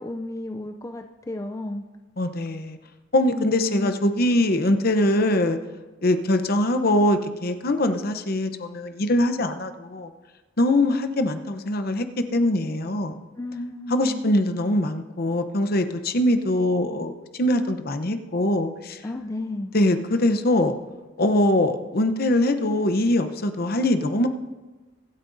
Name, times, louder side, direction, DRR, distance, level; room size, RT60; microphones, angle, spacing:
voice 1, 0.0-1.8 3.2-3.9 13.3-14.2 19.0-19.7, left 2 dB, 15° left, 5 dB, 0.4 m, -33 dB
voice 2, 2.2-2.8 3.1-5.6 6.0-10.1 10.6-13.2 13.9-19.0 19.7-20.8 21.2-24.3, left 1 dB, 50° left, 8 dB, 0.8 m, -22 dB
24.0 x 8.7 x 2.6 m, 1.2 s
head